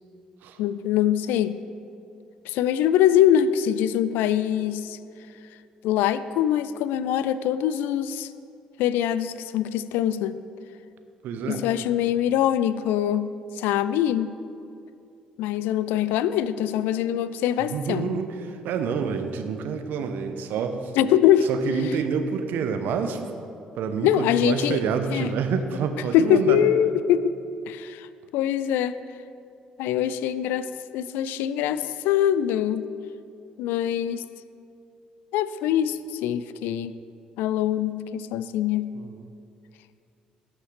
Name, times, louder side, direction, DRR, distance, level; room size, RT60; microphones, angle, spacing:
voice 1, 0.6-1.6 2.5-5.0 5.8-8.3 8.8-10.4 11.5-13.3 13.6-14.3 15.4-18.2 21.0-21.5 24.0-24.8 25.1-25.3 26.1-27.3 27.7-28.1 28.3-29.0 29.8-32.8 33.6-34.2 35.3-36.9 37.4-38.9, left 10 dB, 70° left, 15 dB, 0.4 m, -23 dB
voice 2, 11.2-11.6 17.7-20.8 21.5-23.2 23.8-26.6 38.9-39.2, right 6 dB, 65° right, 7 dB, 0.8 m, -28 dB
18.0 x 6.5 x 3.3 m, 2.6 s
figure-of-eight pair, 45°, 4 cm